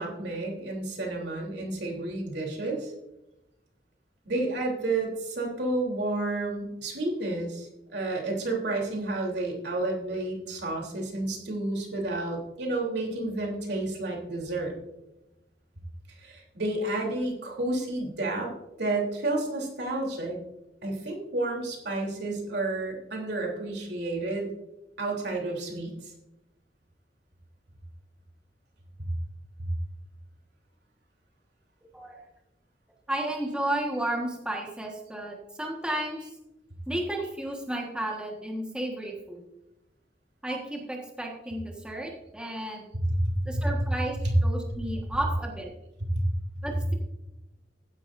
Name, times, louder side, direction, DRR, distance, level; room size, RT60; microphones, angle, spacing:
voice 1, 0.0-2.9 4.2-14.7 16.2-18.5 18.8-20.4 20.8-24.5 25.0-26.1 43.1-43.6 44.2-44.3 46.1-46.2, right 2 dB, 65° right, -1 dB, 3.3 m, -30 dB
voice 2, 33.1-36.3 36.9-39.4 40.4-42.8 43.4-44.2 44.4-45.7 46.6-46.9, right 1 dB, 5° right, 0 dB, 1.5 m, -33 dB
15.0 x 10.5 x 2.6 m, 0.93 s
head